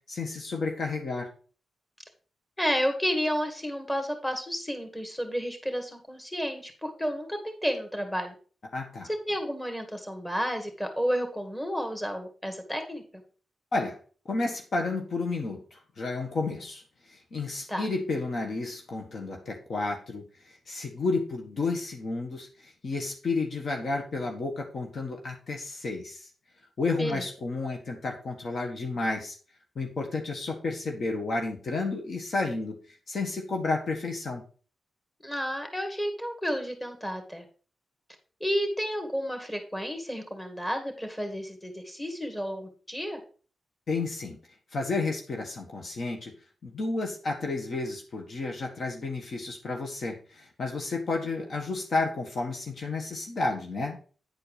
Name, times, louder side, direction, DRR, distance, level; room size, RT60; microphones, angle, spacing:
voice 1, 0.1-1.3 8.7-9.1 13.7-14.0 14.3-26.3 26.8-29.4 29.7-34.4 43.9-44.4 44.7-46.3 46.6-54.0, left 3 dB, 60° left, 3 dB, 1.5 m, -31 dB
voice 2, 2.6-8.3 9.3-13.0 17.7-17.9 27.0-27.2 35.2-37.4 38.4-43.2, equal, 10° left, 4 dB, 2.2 m, -31 dB
9.9 x 4.6 x 5.0 m, 0.39 s
cardioid pair, 70°, 0 cm